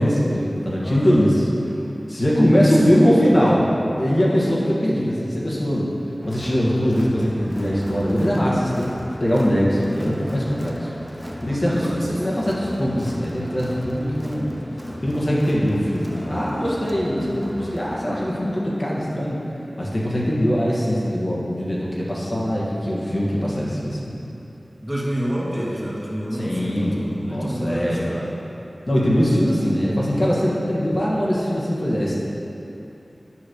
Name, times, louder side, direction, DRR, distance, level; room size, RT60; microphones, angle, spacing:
voice 1, 0.0-1.4 2.1-5.9 6.2-8.9 9.2-10.9 11.4-14.5 15.0-19.4 19.8-24.1 26.4-28.0 28.9-32.2, equal, 55° left, -6 dB, 1.4 m, -21 dB
voice 2, 0.8-1.2 2.8-2.9 11.7-12.2 24.8-28.3 28.8-29.6, equal, 15° right, -6 dB, 1.5 m, -29 dB
Crowd, 6.2-18.0, equal, 5° left, 0.7 m, -36 dB
8.8 x 3.1 x 6.5 m, 2.9 s
wide cardioid pair, 45°, 0 cm